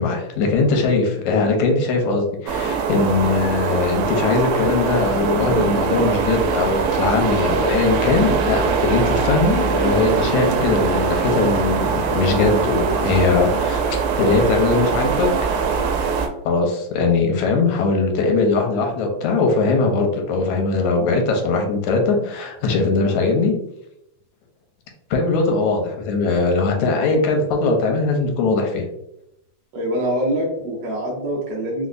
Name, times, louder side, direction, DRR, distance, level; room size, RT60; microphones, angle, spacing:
voice 1, 0.0-15.3 16.5-23.5 25.1-28.9, left 3 dB, 85° left, 2 dB, 2.0 m, -20 dB
sound 1, 2.5-16.3, right 5 dB, 90° right, 2.0 m, -22 dB
voice 2, 29.7-31.9, equal, 70° right, -4 dB, 1.5 m, -24 dB
5.0 x 2.0 x 2.4 m, 0.82 s
omnidirectional pair, 3.3 m